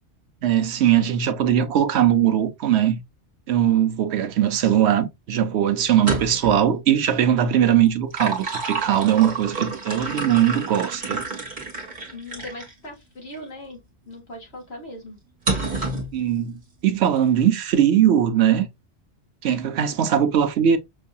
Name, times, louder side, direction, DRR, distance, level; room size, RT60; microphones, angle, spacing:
voice 1, 0.4-3.0 3.5-11.2 16.1-18.7 19.4-20.8, right 10 dB, 75° right, 1.0 m, -20 dB
sound 1, 5.9-6.6 7.9-12.7 13.3-13.4 15.5-16.1, right 3 dB, 40° right, 1.6 m, -29 dB
voice 2, 12.1-15.2, left 1 dB, 65° left, 1.8 m, -39 dB
6.1 x 2.7 x 2.3 m
omnidirectional pair, 1.2 m